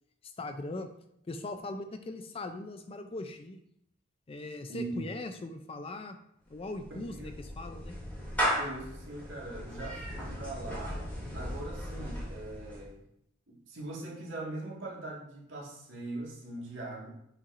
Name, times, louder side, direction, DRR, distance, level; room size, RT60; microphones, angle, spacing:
voice 1, 0.2-0.9 1.3-3.6 4.3-6.2 6.5-7.9, left 2 dB, 30° left, 8 dB, 0.4 m, -40 dB
voice 2, 4.7-5.0 6.9-7.3 8.6-11.0 11.3-13.0 13.5-17.1, right 2 dB, 65° right, -3 dB, 1.8 m, -41 dB
Clapping / Meow, 6.5-12.9, equal, 10° left, 2.6 m, -36 dB
6.8 x 5.7 x 2.5 m, 0.75 s
head